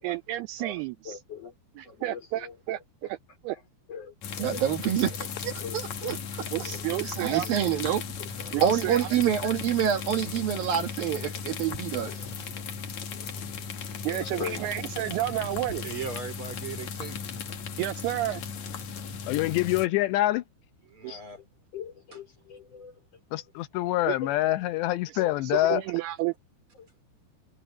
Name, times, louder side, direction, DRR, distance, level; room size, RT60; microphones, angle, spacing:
voice 1, 0.0-1.2 1.8-3.2 3.4-3.6 6.5-7.5 8.5-9.1 14.0-15.8 17.8-18.4 21.0-21.1 24.1-24.2 25.1-26.3, right 16 dB, 85° right, 2.2 m, -31 dB
voice 2, 0.6-1.5 1.8-2.8 3.9-5.0 5.6-7.1 7.4-7.6 8.4-8.5 11.2-11.3 12.0-12.2 13.1-14.7 21.1-21.4 21.7-23.0 24.0-24.5 25.2-25.4 26.8-26.9, left 6 dB, 35° left, 4.8 m, -42 dB
sound 1, 4.2-19.9, left 6 dB, 50° left, 2.5 m, -37 dB
voice 3, 4.4-5.1 5.4-6.2 7.2-8.0 8.6-12.1, right 9 dB, 60° right, 3.1 m, -26 dB
voice 4, 15.8-17.2 20.9-21.4, right 6 dB, 35° right, 3.5 m, -38 dB
voice 5, 19.3-20.4 23.3-25.8, left 16 dB, 80° left, 2.9 m, -25 dB
omnidirectional pair, 5.1 m